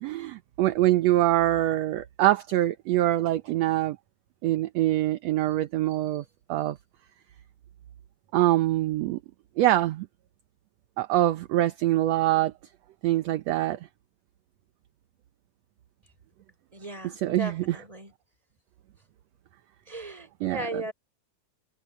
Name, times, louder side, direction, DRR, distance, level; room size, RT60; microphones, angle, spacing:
voice 1, 0.0-4.0 4.4-6.2 6.5-6.8 8.3-9.2 9.6-10.1 11.0-12.5 13.0-13.8 17.1-17.8 20.4-20.8, right 15 dB, 70° right, 1.7 m, -24 dB
voice 2, 16.7-18.1 19.9-20.9, right 1 dB, 10° right, 4.7 m, -37 dB
omnidirectional pair, 3.7 m